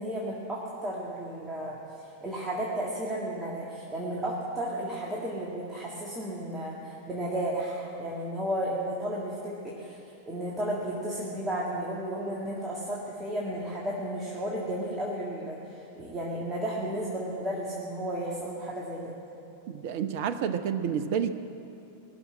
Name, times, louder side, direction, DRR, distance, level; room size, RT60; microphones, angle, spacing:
voice 1, 0.0-1.8 2.2-10.0 10.3-19.2, right 1 dB, 15° right, -5 dB, 2.0 m, -33 dB
voice 2, 19.7-21.3, right 7 dB, 50° right, 11 dB, 0.7 m, -29 dB
18.0 x 7.1 x 9.7 m, 2.8 s
figure-of-eight pair, 90°, 0 cm